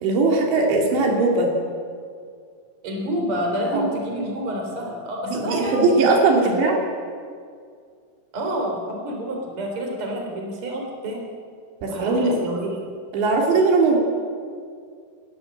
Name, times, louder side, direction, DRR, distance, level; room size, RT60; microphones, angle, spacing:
voice 1, 0.0-1.5 3.7-3.9 5.2-6.8 11.8-12.3 13.1-14.0, right 3 dB, 80° right, 1 dB, 4.7 m, -19 dB
voice 2, 2.8-6.1 8.3-11.2 11.9-12.8, right 1 dB, 30° right, 1 dB, 4.2 m, -28 dB
29.0 x 12.0 x 8.8 m, 2.2 s
omnidirectional pair, 5.1 m